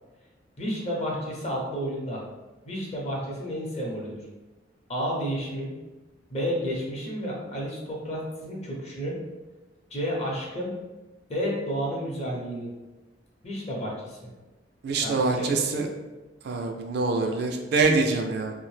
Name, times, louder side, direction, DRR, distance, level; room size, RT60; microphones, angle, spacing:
voice 1, 0.6-2.2 2.6-4.2 4.9-5.7 6.3-9.2 9.9-10.7 11.3-12.7 13.4-14.2 15.0-15.6, equal, 35° left, -3 dB, 0.7 m, -31 dB
voice 2, 14.8-15.9 16.4-18.5, right 3 dB, 60° right, 3 dB, 0.3 m, -25 dB
2.7 x 2.1 x 3.1 m, 1.1 s
head